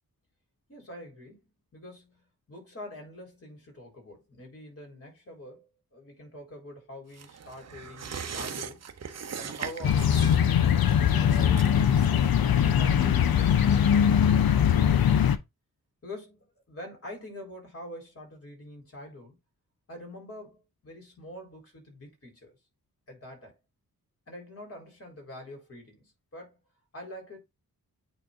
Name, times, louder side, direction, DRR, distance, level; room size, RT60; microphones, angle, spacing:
voice 1, 0.7-8.8 9.4-11.9 12.5-14.9 16.0-19.4 19.9-22.6 23.1-23.6 24.3-26.6 26.9-27.4, left 1 dB, 40° left, 4.2 m, -45 dB
sound 1, 7.1-14.2 14.5-14.6, right 7 dB, 45° right, 0.8 m, -41 dB
sound 2, 9.8-15.4, left 9 dB, 90° left, 0.8 m, -21 dB
8.9 x 3.3 x 3.7 m
wide cardioid pair, 160°, 35 cm